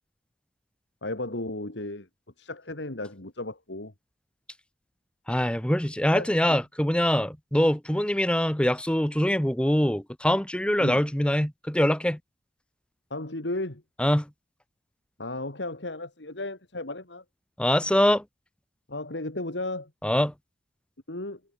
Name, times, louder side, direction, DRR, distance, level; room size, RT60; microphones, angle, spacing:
voice 1, 1.0-2.1 2.4-3.9 6.1-6.6 10.8-11.1 13.1-13.8 15.2-17.2 18.9-19.9 21.1-21.4, left 2 dB, 80° left, 2.9 m, -34 dB
voice 2, 5.3-12.2 14.0-14.3 17.6-18.2 20.0-20.3, equal, 5° left, 1.1 m, -24 dB
head